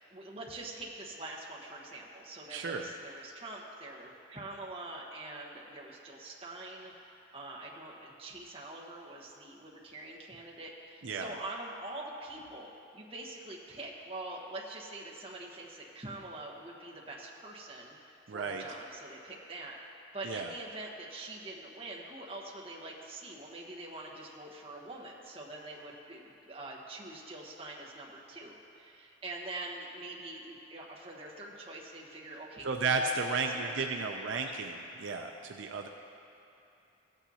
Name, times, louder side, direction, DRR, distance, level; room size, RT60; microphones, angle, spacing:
voice 1, 0.1-19.8 20.1-34.4, right 2 dB, 30° right, -4 dB, 1.2 m, -45 dB
voice 2, 2.5-2.9 11.0-11.3 18.3-18.6 20.2-20.5 32.6-34.7 35.0-35.9, right 4 dB, 70° right, 3 dB, 0.5 m, -33 dB
16.0 x 8.9 x 2.8 m, 2.8 s
head